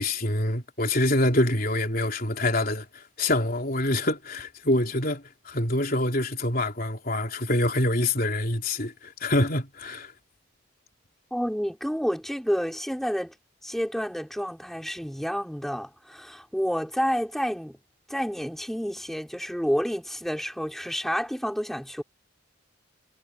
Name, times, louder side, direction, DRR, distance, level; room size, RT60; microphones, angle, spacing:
voice 1, 0.0-2.9 3.2-10.1, left 1 dB, 45° left, 3.8 m, -25 dB
voice 2, 11.3-13.3 13.6-17.8 18.1-22.0, equal, ahead, 3.7 m, -29 dB
head